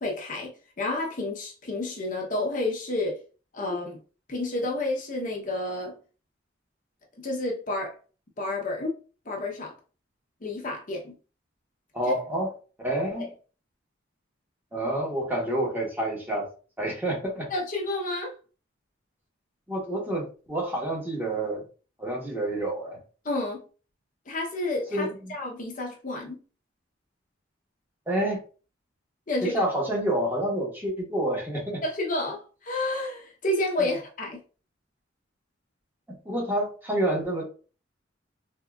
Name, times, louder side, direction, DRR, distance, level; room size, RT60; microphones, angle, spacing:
voice 1, 0.0-3.2 3.5-4.0 4.3-5.9 7.2-8.0 8.4-8.9 9.3-9.7 10.4-11.2 12.1-12.2 13.2-13.3 17.5-18.3 23.2-23.6 24.3-26.4 29.3-29.6 31.8-34.4, left 2 dB, 45° left, 0.7 m, -30 dB
voice 2, 11.9-12.5 12.8-13.3 14.7-16.5 16.8-17.5 19.7-21.6 22.0-23.0 24.9-25.3 28.1-28.4 29.4-31.8 33.8-33.9 36.2-37.4, right 1 dB, 10° right, 1.0 m, -28 dB
3.6 x 2.7 x 2.3 m
head